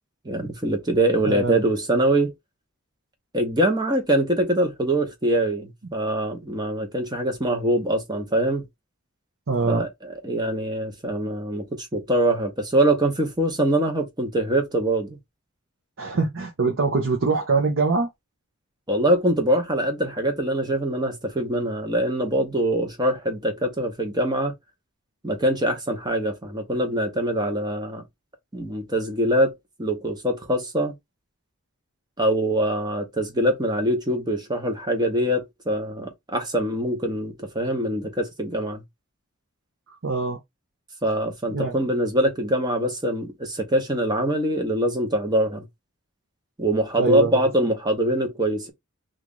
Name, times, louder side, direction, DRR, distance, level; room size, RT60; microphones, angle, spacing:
voice 1, 0.2-2.3 3.3-8.6 9.7-15.2 18.9-24.5 25.2-28.0 28.5-29.5 29.8-30.9 32.2-38.8 41.0-45.6 46.6-48.7, right 1 dB, 20° right, 0.9 m, -23 dB
voice 2, 1.2-1.6 9.5-9.8 16.0-18.1 40.0-40.4 41.5-41.7 47.0-47.4, right 4 dB, 60° right, 0.7 m, -23 dB
3.0 x 2.5 x 3.7 m
head